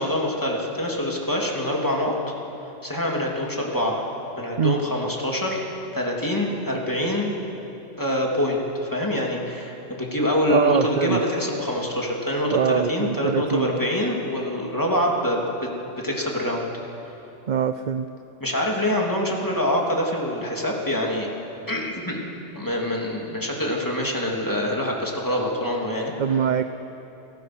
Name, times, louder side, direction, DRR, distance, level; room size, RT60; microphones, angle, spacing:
voice 1, 0.0-2.1 2.8-4.0 4.4-5.6 5.9-7.4 8.0-15.4 16.0-16.6 18.4-21.3 21.7-26.1, left 1 dB, 15° left, -2 dB, 3.1 m, -25 dB
voice 2, 10.5-11.2 12.5-13.8 17.5-18.1 26.2-26.6, right 7 dB, 50° right, 10 dB, 0.6 m, -22 dB
29.0 x 18.0 x 6.2 m, 3.0 s
omnidirectional pair, 1.2 m